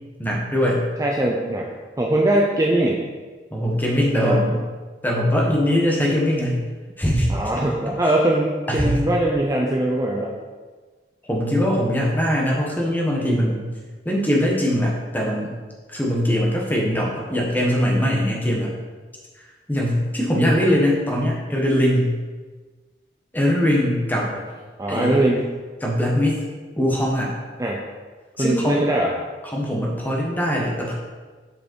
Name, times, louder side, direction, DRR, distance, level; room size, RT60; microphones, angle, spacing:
voice 1, 0.2-0.9 3.5-4.6 5.0-6.6 7.0-7.3 7.6-7.7 8.7-9.1 11.2-13.7 14.0-15.6 15.9-18.7 19.4-22.1 23.3-24.3 24.9-25.3 25.8-26.4 26.8-27.3 28.4-28.8 29.4-30.9, equal, 10° left, -2 dB, 1.3 m, -21 dB
voice 2, 1.0-1.7 2.0-3.0 4.2-4.4 7.3-10.3 24.3-24.4 24.8-25.4 27.6-27.8 28.4-29.1, right 1 dB, 20° right, -1 dB, 0.5 m, -21 dB
6.7 x 5.4 x 4.6 m, 1.4 s
head